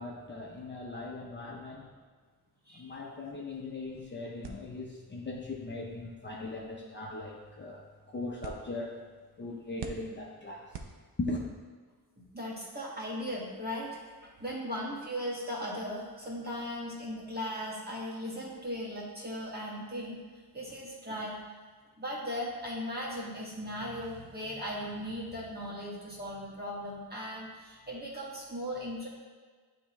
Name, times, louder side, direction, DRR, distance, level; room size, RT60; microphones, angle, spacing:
voice 1, 0.0-1.9 2.7-7.8 8.1-9.0 9.4-10.7 11.2-11.5, left 2 dB, 30° left, -3 dB, 0.6 m, -39 dB
sound 1, 4.4-11.5, right 5 dB, 85° right, 0.7 m, -50 dB
voice 2, 12.3-14.0 14.4-20.2 20.5-21.4 22.0-29.1, equal, 25° right, -5 dB, 1.4 m, -37 dB
10.0 x 3.6 x 3.0 m, 1.5 s
wide cardioid pair, 160°, 39 cm